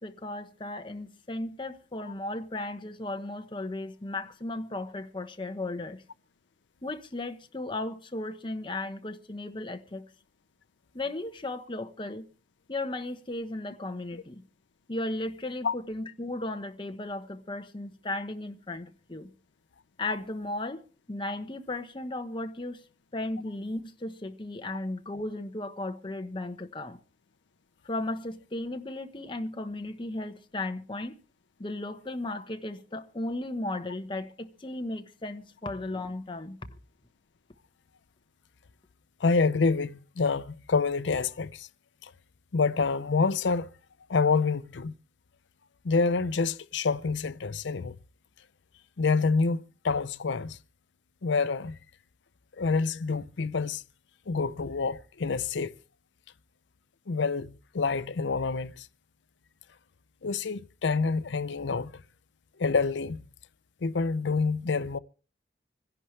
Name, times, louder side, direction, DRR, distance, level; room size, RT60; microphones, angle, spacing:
voice 1, 0.0-6.0 6.8-10.0 10.9-12.3 12.7-14.4 14.9-19.3 20.0-20.8 21.1-22.8 23.1-27.0 27.8-31.2 31.6-36.6, left 2 dB, 30° left, 1.1 m, -35 dB
voice 2, 39.2-41.7 42.0-42.1 42.5-43.7 44.1-44.9 45.8-47.9 49.0-50.6 51.2-51.8 52.6-53.8 54.3-55.7 57.1-58.9 60.2-61.9 62.6-63.2 63.8-65.0, left 4 dB, 75° left, 0.6 m, -27 dB
26.0 x 11.0 x 3.3 m
head